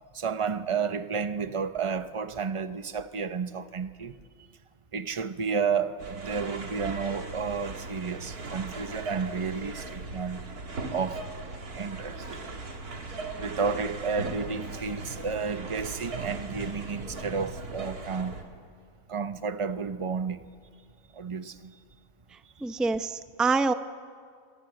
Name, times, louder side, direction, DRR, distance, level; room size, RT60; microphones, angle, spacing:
voice 1, 0.1-4.2 4.9-10.4 10.9-11.2 11.7-12.2 13.4-18.4 19.1-20.4 21.1-21.7, right 5 dB, 25° right, 0.8 m, -31 dB
sound 1, 6.0-18.4, right 3 dB, 85° right, 2.8 m, -38 dB
voice 2, 22.6-23.7, right 4 dB, ahead, 0.3 m, -26 dB
29.5 x 24.5 x 7.9 m
omnidirectional pair, 1.6 m